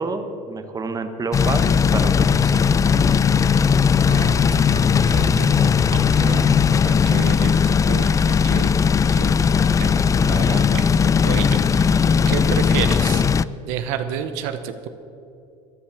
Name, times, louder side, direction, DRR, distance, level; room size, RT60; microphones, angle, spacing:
voice 1, 0.0-2.7, right 3 dB, 20° right, 8 dB, 1.2 m, -29 dB
sound 1, 1.3-13.4, left 6 dB, 20° left, 0.3 m, -18 dB
voice 2, 4.0-8.2 8.4-8.7 9.1-10.9 11.2-13.2 13.7-14.9, right 9 dB, 75° right, 9 dB, 0.9 m, -31 dB
13.5 x 10.0 x 6.9 m, 2.7 s
supercardioid pair, 100°, 16 cm